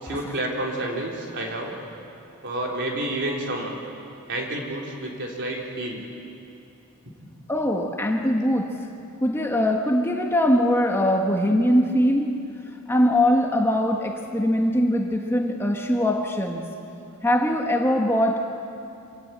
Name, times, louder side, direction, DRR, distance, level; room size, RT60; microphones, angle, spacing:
voice 1, 0.0-1.8 2.4-3.7 4.3-6.0, right 1 dB, 55° right, -1 dB, 3.7 m, -29 dB
voice 2, 7.5-8.8 9.2-12.3 12.9-16.6 17.2-18.4, left 1 dB, 10° left, 2 dB, 1.2 m, -22 dB
26.5 x 17.5 x 8.7 m, 2.7 s
head